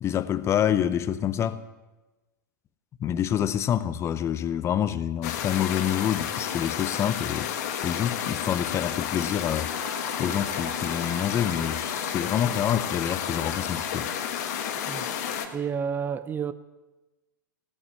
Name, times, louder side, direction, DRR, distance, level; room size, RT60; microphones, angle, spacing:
voice 1, 0.0-1.6 3.0-7.5 7.8-9.7 10.2-14.1, left 10 dB, 25° left, 0.7 m, -27 dB
sound 1, 5.2-15.5, left 9 dB, 50° left, 1.5 m, -31 dB
sound 2, 9.7-15.6, right 9 dB, 60° right, 1.4 m, -45 dB
voice 2, 15.5-16.5, right 7 dB, 20° right, 0.6 m, -30 dB
16.5 x 9.5 x 7.1 m
figure-of-eight pair, 100°, 11 cm